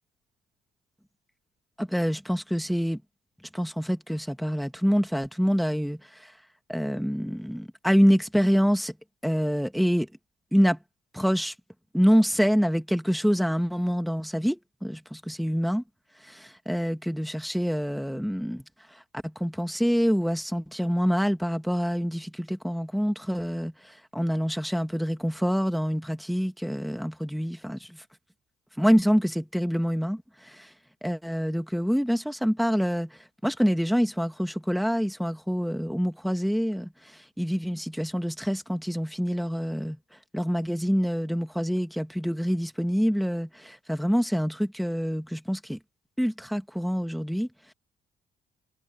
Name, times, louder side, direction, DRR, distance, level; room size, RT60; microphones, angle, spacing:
voice 1, 1.8-3.0 3.5-6.4 6.7-9.0 9.2-10.1 10.5-10.8 11.1-11.5 11.9-15.8 16.2-28.0 28.8-30.7 31.0-45.8 46.2-47.7, equal, ahead, 2.0 m, -26 dB
cardioid pair, 90°, 20 cm